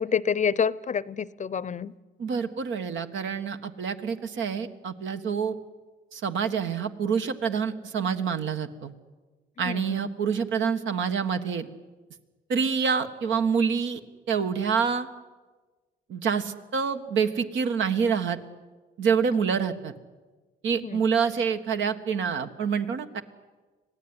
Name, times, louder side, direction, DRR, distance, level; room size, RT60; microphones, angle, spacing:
voice 1, 0.0-1.9 9.6-10.1 20.8-21.0, left 7 dB, 40° left, 20 dB, 0.7 m, -28 dB
voice 2, 2.2-5.5 6.1-8.9 9.6-11.7 12.5-14.0 14.3-15.1 16.1-18.4 19.0-19.9 20.6-23.2, right 6 dB, 75° right, 7 dB, 1.7 m, -27 dB
25.5 x 17.0 x 9.8 m, 1.3 s
cardioid pair, 90°, 20 cm